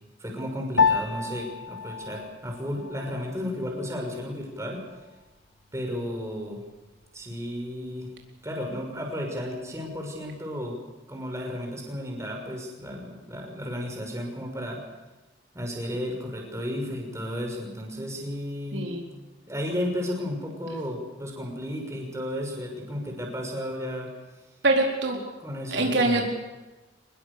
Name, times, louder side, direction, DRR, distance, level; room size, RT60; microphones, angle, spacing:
voice 1, 0.2-4.8 5.7-6.6 7.1-8.1 8.4-10.8 11.1-14.8 15.5-18.9 19.5-24.1 25.4-26.3, equal, 15° right, 1 dB, 6.1 m, -33 dB
Piano, 0.8-10.4, left 5 dB, 75° left, 1.7 m, -32 dB
voice 2, 18.7-19.0 24.6-25.2 25.7-26.3, right 2 dB, 70° right, 1 dB, 4.4 m, -23 dB
25.0 x 21.5 x 7.0 m, 1.1 s
head